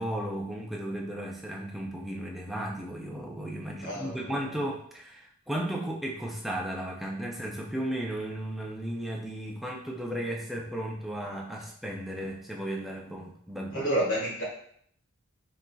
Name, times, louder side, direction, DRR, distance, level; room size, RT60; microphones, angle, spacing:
voice 1, 0.0-13.8, right 1 dB, ahead, -2 dB, 0.5 m, -35 dB
voice 2, 3.8-4.4 13.7-14.4, right 1 dB, 65° left, -4 dB, 1.7 m, -29 dB
4.3 x 3.7 x 2.3 m, 0.63 s
head